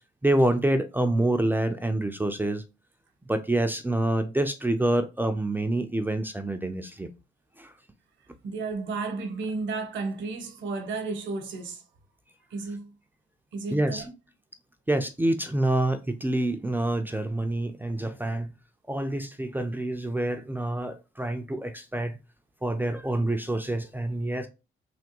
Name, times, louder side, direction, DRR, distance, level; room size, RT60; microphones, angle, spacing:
voice 1, 0.2-2.6 3.3-7.1 13.7-14.0 14.9-18.5 18.9-22.1 22.6-24.5, right 1 dB, 10° right, 0.4 m, -27 dB
voice 2, 8.4-11.8 12.5-12.9 13.5-14.1, right 3 dB, 70° right, 0.8 m, -33 dB
3.4 x 2.2 x 2.9 m
cardioid pair, 90°, 20 cm